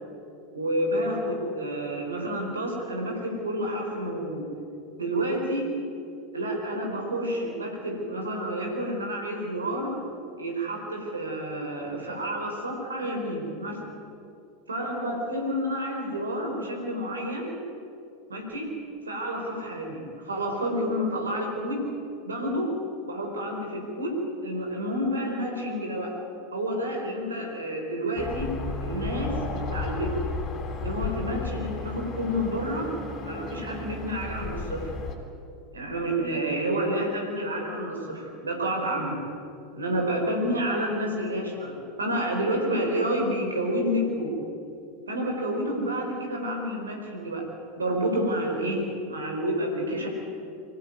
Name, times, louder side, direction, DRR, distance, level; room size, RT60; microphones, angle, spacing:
voice 1, 0.5-4.5 5.0-5.6 6.3-9.9 10.4-13.8 14.7-17.6 18.3-18.7 19.0-21.9 22.2-22.7 23.1-26.1 26.5-28.5 28.8-30.2 30.8-32.9 33.2-34.9 35.7-39.2 39.7-44.3 45.1-47.5 47.8-50.1, equal, 80° right, 1 dB, 4.7 m, -29 dB
sound 1, 28.2-35.2, left 3 dB, 30° left, 4.0 m, -34 dB
24.5 x 15.5 x 9.4 m, 2.6 s
figure-of-eight pair, 80°, 0 cm